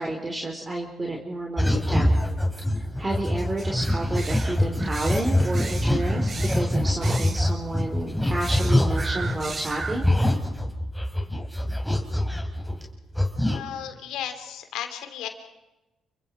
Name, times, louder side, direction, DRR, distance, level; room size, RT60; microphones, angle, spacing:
voice 1, 0.0-2.1 3.0-10.1, right 2 dB, 25° right, 0 dB, 4.2 m, -30 dB
sound 1, 1.6-9.4 9.8-12.9 13.1-13.6, left 1 dB, 5° left, 3.7 m, -24 dB
sound 2, 3.6-10.3, right 4 dB, 40° right, 3.1 m, -37 dB
voice 2, 13.5-15.3, left 10 dB, 75° left, 8 dB, 3.0 m, -34 dB
30.0 x 24.0 x 4.8 m, 1.0 s
hypercardioid pair, 50°, 0 cm